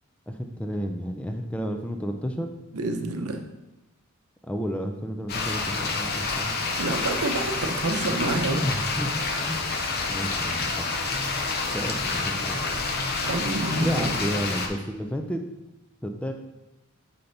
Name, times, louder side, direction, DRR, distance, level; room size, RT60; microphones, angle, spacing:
voice 1, 0.3-2.5 4.5-6.6 8.6-9.2 9.5-9.6 10.1-10.9 11.7-12.5 13.7-15.4 16.0-16.3, equal, 5° left, 4 dB, 0.4 m, -31 dB
voice 2, 2.7-3.4 6.8-8.6 13.2-14.1, right 2 dB, 80° right, 5 dB, 0.7 m, -28 dB
sound 1, 5.3-14.7, left 3 dB, 45° left, 0.7 m, -28 dB
5.7 x 5.1 x 4.0 m, 1.0 s
head